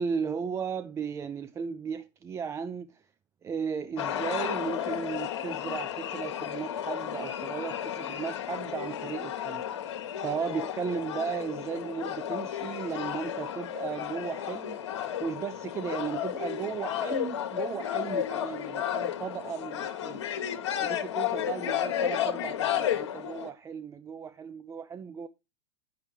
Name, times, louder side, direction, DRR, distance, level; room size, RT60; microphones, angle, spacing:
voice 1, 0.0-3.0 3.4-14.8 15.2-20.2 20.8-25.3, right 6 dB, 20° right, 0.4 m, -35 dB
sound 1, 4.0-23.5, left 10 dB, 65° left, 1.3 m, -33 dB
9.8 x 6.5 x 3.2 m
hypercardioid pair, 100°, 15 cm